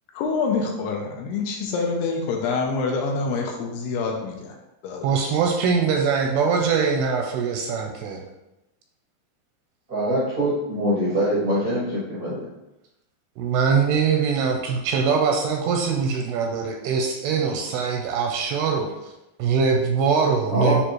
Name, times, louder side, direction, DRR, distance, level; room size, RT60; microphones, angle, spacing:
voice 1, 0.2-4.5 4.8-5.4, left 4 dB, 80° left, 1 dB, 2.7 m, -26 dB
voice 2, 5.0-8.2 13.4-18.9 19.4-20.8, right 5 dB, 85° right, 1 dB, 2.4 m, -22 dB
voice 3, 9.9-12.5 20.5-20.8, equal, 65° right, -10 dB, 0.9 m, -23 dB
9.3 x 3.7 x 3.1 m, 0.93 s
omnidirectional pair, 4.9 m